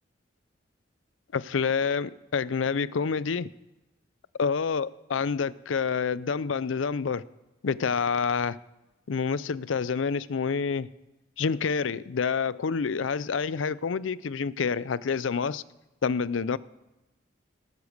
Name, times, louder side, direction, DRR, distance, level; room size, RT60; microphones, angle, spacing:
voice 1, 1.3-3.5 4.4-7.2 7.6-8.6 9.1-10.9 11.4-15.6 16.0-16.6, left 5 dB, 90° left, 19 dB, 0.5 m, -28 dB
18.5 x 8.1 x 6.6 m, 1.0 s
head